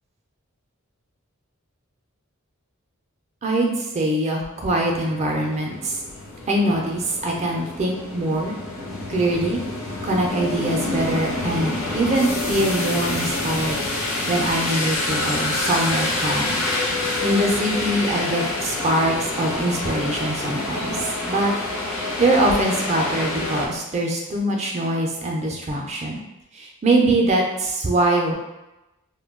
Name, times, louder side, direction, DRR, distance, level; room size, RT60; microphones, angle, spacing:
voice 1, 3.4-6.0 6.5-8.5 9.1-9.6 10.0-16.6 17.2-21.5 21.9-26.2 26.5-28.3, right 1 dB, 30° right, 0 dB, 0.4 m, -23 dB
sound 1, 4.6-23.7, left 2 dB, 80° left, 0.6 m, -27 dB
2.2 x 2.2 x 3.5 m, 0.98 s
head